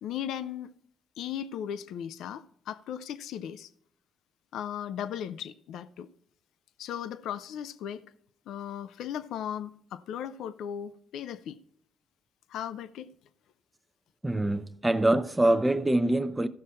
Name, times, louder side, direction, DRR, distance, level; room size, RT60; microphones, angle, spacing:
voice 1, 0.0-0.7 1.2-3.7 4.5-6.1 6.8-8.0 8.5-11.6 12.5-13.1, left 9 dB, 80° left, 0.5 m, -37 dB
voice 2, 14.2-16.5, right 1 dB, 15° right, 0.7 m, -24 dB
14.5 x 6.1 x 4.3 m
cardioid pair, 90°, 0 cm